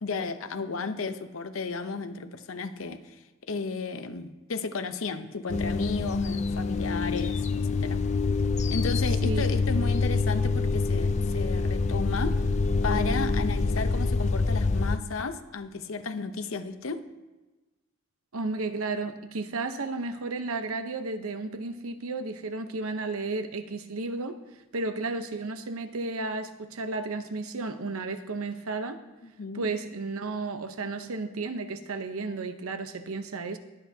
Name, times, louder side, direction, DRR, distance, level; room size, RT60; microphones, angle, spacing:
voice 1, 0.0-8.0 8.7-12.5 12.8-17.1 29.4-29.7, left 4 dB, 70° left, 10 dB, 0.7 m, -33 dB
sound 1, 5.5-15.0, left 4 dB, 35° left, 0.4 m, -26 dB
voice 2, 18.3-24.4 24.7-29.0 29.5-33.6, right 3 dB, 85° right, 9 dB, 0.8 m, -33 dB
21.0 x 8.3 x 2.8 m, 1.2 s
head